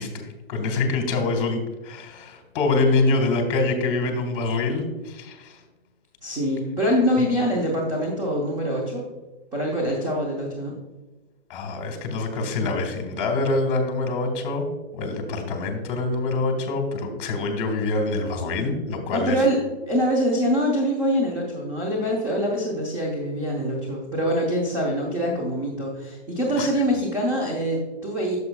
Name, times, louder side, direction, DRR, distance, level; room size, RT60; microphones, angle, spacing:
voice 1, 0.0-5.6 11.5-14.7 14.9-19.4 26.6-26.7, left 3 dB, 30° left, 4 dB, 1.5 m, -25 dB
voice 2, 6.2-9.0 9.5-10.8 19.1-28.4, equal, 10° right, -4 dB, 0.9 m, -24 dB
9.4 x 7.0 x 2.3 m, 1.2 s
hypercardioid pair, 160°, 33 cm